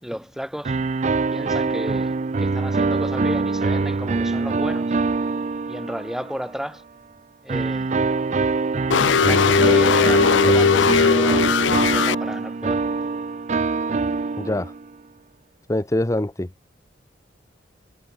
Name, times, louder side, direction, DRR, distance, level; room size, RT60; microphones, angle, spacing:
voice 1, 0.0-0.8 1.3-5.0 5.7-6.8 7.4-8.0 9.1-12.9, equal, ahead, 1.7 m, -33 dB
sound 1, 0.6-6.5 7.5-14.9, right 3 dB, 40° right, 0.4 m, -24 dB
sound 2, 8.9-12.2, left 6 dB, 80° left, 0.5 m, -18 dB
voice 2, 14.4-14.7 15.7-16.5, left 1 dB, 15° left, 0.8 m, -24 dB
head